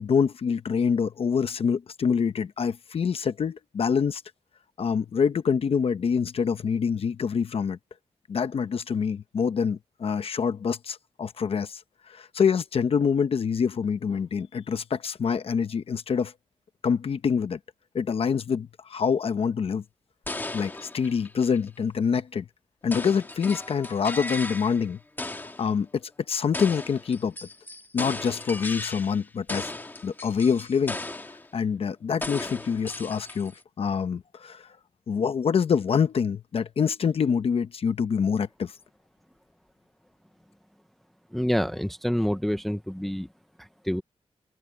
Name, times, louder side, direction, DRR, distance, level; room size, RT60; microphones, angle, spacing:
voice 1, 0.0-4.2 4.8-7.8 8.3-11.8 12.1-16.3 16.8-17.6 17.9-19.8 20.5-22.5 22.8-25.0 25.4-27.3 27.9-29.7 30.0-31.0 31.5-33.5 33.8-34.7 35.1-38.7, left 6 dB, 65° left, 1.0 m, -26 dB
sound 1, 20.3-21.7 22.9-24.9 25.2-25.7 26.5-29.2 29.5-31.5 32.2-33.6, left 2 dB, 20° left, 1.9 m, -36 dB
voice 2, 41.3-43.3 43.6-44.0, equal, ahead, 0.6 m, -27 dB
wide cardioid pair, 170°, 11 cm